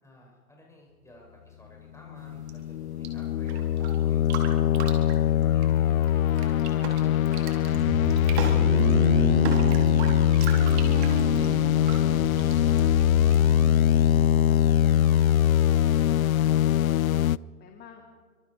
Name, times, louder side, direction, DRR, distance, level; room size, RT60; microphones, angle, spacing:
voice 1, 0.0-6.9 7.4-8.5 8.8-11.7, left 1 dB, 5° left, -1 dB, 6.9 m, -53 dB
sound 1, 2.2-17.4, left 11 dB, 70° left, 0.5 m, -22 dB
sound 2, 2.2-14.2, right 6 dB, 45° right, 4.3 m, -41 dB
sound 3, 7.7-14.3, right 11 dB, 20° right, 1.3 m, -34 dB
voice 2, 14.5-18.0, left 7 dB, 20° left, 2 dB, 2.4 m, -50 dB
27.0 x 25.5 x 4.9 m, 1.5 s
hypercardioid pair, 120°, 44 cm